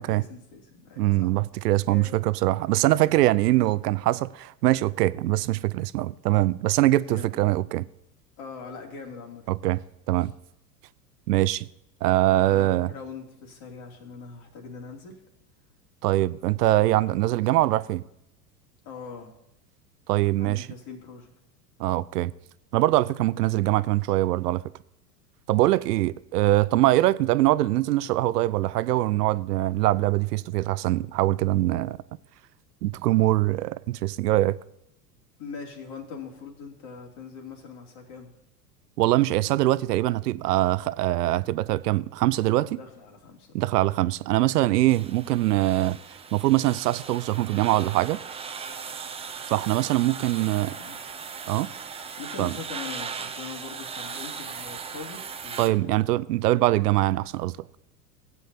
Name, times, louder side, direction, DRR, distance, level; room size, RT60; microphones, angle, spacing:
voice 1, 0.0-1.3 1.8-2.2 7.0-7.4 8.4-9.4 10.2-10.3 12.3-15.2 16.2-16.4 16.8-17.4 18.8-19.3 20.4-21.3 26.7-26.9 35.4-38.3 42.7-43.7 50.4-51.3 52.2-56.2, left 5 dB, 50° left, 2.8 m, -42 dB
voice 2, 1.0-7.9 9.5-9.8 10.1-10.3 11.3-11.7 12.0-12.9 16.0-18.0 20.1-20.7 21.8-22.3 22.7-24.6 25.5-32.0 32.8-34.6 39.0-42.8 43.5-46.0 46.3-48.2 49.5-50.7 51.5-51.7 52.4-52.5 55.6-57.5, right 16 dB, 70° right, 0.6 m, -23 dB
sound 1, 44.9-55.7, right 6 dB, 10° right, 0.6 m, -38 dB
16.0 x 8.5 x 2.8 m
hypercardioid pair, 90°, 49 cm